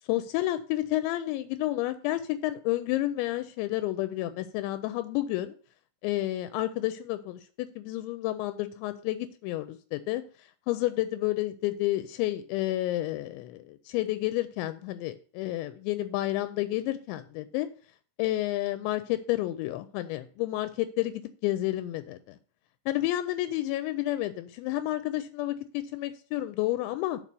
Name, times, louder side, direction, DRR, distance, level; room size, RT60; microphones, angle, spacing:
voice 1, 0.1-5.6 6.0-10.2 10.7-17.7 18.2-22.4 22.9-27.2, left 15 dB, 85° left, 11 dB, 2.8 m, -30 dB
7.3 x 4.4 x 6.7 m, 0.42 s
omnidirectional pair, 5.3 m